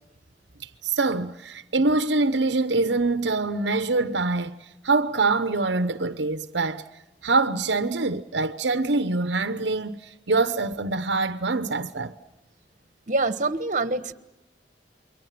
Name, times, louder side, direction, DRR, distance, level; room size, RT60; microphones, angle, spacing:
voice 1, 0.8-4.6 4.8-6.8 7.2-12.1, right 3 dB, 75° right, 1.0 m, -24 dB
voice 2, 13.1-14.1, right 3 dB, 45° right, 1.4 m, -25 dB
28.5 x 23.5 x 7.6 m
head